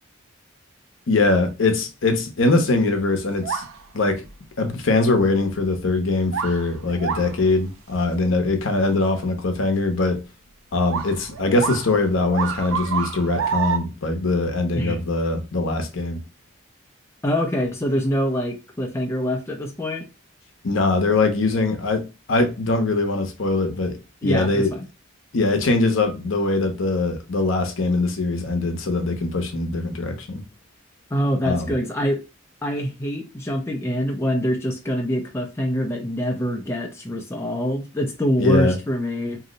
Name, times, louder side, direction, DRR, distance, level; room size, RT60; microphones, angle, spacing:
voice 1, 1.1-3.6 3.9-4.2 4.6-10.2 10.7-16.2 20.6-24.7 25.3-30.4 31.4-31.7 38.4-38.8, left 2 dB, 70° left, 0.7 m, -22 dB
sound 1, 3.4-4.3 4.9-5.0 6.2-7.4 8.3-8.4 8.8-8.9 10.9-13.8, right 7 dB, 75° right, 0.4 m, -28 dB
voice 2, 17.2-20.0 24.2-24.8 31.1-32.2 32.6-39.4, equal, 10° left, 0.4 m, -25 dB
2.7 x 2.0 x 3.7 m
head